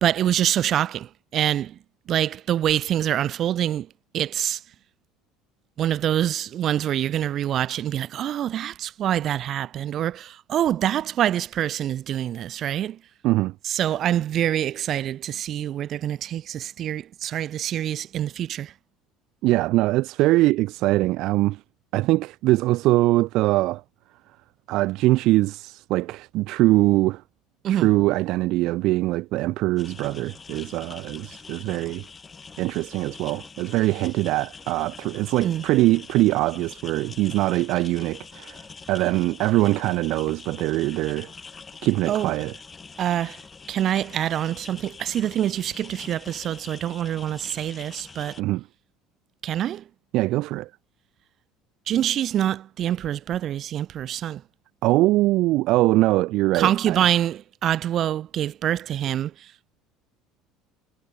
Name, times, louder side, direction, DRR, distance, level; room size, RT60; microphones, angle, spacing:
voice 1, 0.0-1.8 2.1-4.6 5.8-13.0 13.6-18.7 27.6-27.9 35.4-35.7 42.1-42.3 43.0-43.4 43.7-48.4 49.4-49.8 51.9-54.4 56.5-59.5, right 11 dB, 50° right, 0.9 m, -25 dB
voice 2, 13.2-13.5 19.4-21.6 21.9-23.8 24.7-27.2 27.7-32.1 32.6-41.3 41.8-42.5 48.4-48.6 50.1-50.7 54.8-57.0, right 18 dB, 65° right, 0.4 m, -22 dB
sound 1, 29.8-48.4, left 5 dB, 25° left, 5.6 m, -44 dB
supercardioid pair, 105°, 0 cm